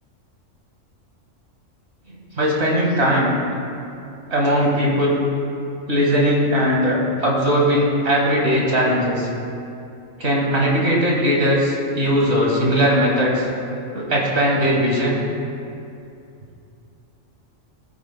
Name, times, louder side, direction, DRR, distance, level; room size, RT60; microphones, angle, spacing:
voice 1, 2.4-3.3 4.3-5.2 5.9-9.3 10.2-13.5 13.9-15.2, equal, 55° right, -3 dB, 2.0 m, -19 dB
18.0 x 8.7 x 2.2 m, 2.6 s
omnidirectional pair, 1.4 m